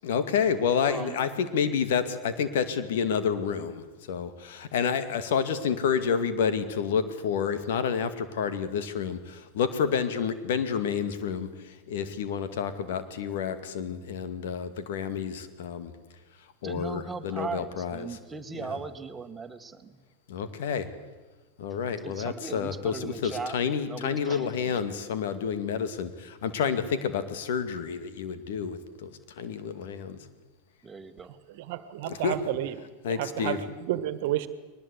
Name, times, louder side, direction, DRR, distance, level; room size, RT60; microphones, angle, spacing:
voice 1, 0.0-15.9 16.6-18.2 18.5-18.8 20.3-20.9 21.6-29.1 29.4-30.2 32.0-32.4 33.0-33.6, left 7 dB, 70° left, 11 dB, 2.2 m, -29 dB
voice 2, 0.8-1.2 16.6-20.0 22.0-23.6 23.9-24.7 30.8-31.3, right 4 dB, 15° right, 7 dB, 2.0 m, -38 dB
voice 3, 31.7-32.8 33.0-34.5, right 13 dB, 60° right, 14 dB, 1.6 m, -31 dB
21.5 x 19.5 x 8.3 m, 1.2 s
hypercardioid pair, 100°, 0 cm